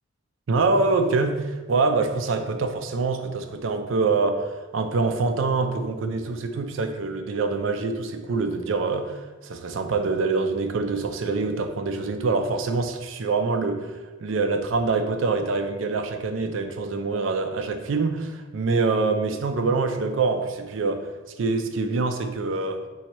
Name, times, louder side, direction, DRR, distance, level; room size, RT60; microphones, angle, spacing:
voice 1, 0.5-13.9 14.2-21.0 21.4-22.8, right 3 dB, 70° right, 7 dB, 0.4 m, -25 dB
4.1 x 2.7 x 4.4 m, 1.3 s
head